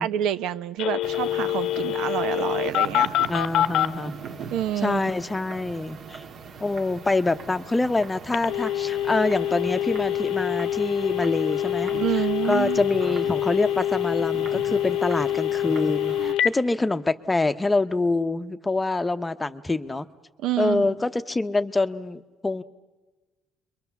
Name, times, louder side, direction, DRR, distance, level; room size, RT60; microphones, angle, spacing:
voice 1, 0.0-3.3 4.5-5.0 12.0-12.8 20.4-20.9, right 11 dB, 80° right, 12 dB, 0.9 m, -27 dB
Telephone, 0.8-3.9 8.3-16.5, left 12 dB, 70° left, 0.9 m, -25 dB
sound 1, 1.0-16.3, right 6 dB, 50° right, 1.6 m, -40 dB
voice 2, 3.3-4.1 4.8-6.2 6.6-20.1 20.6-22.6, left 2 dB, 15° left, 10 dB, 0.8 m, -26 dB
29.5 x 23.0 x 7.1 m, 1.2 s
cardioid pair, 140°, 0 cm